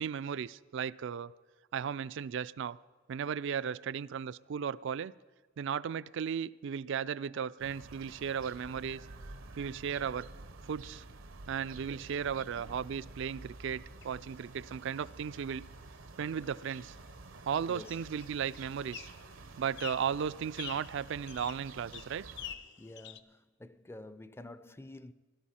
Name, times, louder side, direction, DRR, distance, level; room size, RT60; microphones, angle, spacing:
voice 1, 0.0-1.3 1.7-2.8 3.1-5.1 5.6-9.0 9.6-10.3 10.6-11.0 11.5-15.7 16.2-17.0 17.5-19.1 19.6-22.2, right 7 dB, 65° right, 0.4 m, -35 dB
sound 1, 7.6-22.6, right 3 dB, 85° right, 0.9 m, -50 dB
sound 2, 14.0-23.2, left 10 dB, 60° left, 0.6 m, -50 dB
voice 2, 17.7-18.0 22.8-25.1, left 1 dB, 10° left, 0.4 m, -49 dB
17.0 x 12.5 x 4.3 m
head